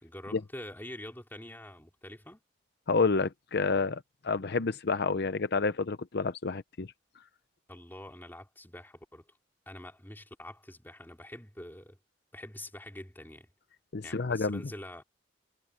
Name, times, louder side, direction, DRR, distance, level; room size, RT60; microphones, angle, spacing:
voice 1, 0.0-2.4 7.7-9.3 9.7-12.0 12.3-13.5 14.0-15.0, left 1 dB, 10° left, 2.9 m, -45 dB
voice 2, 2.9-6.9 13.9-14.6, left 4 dB, 60° left, 0.7 m, -29 dB
head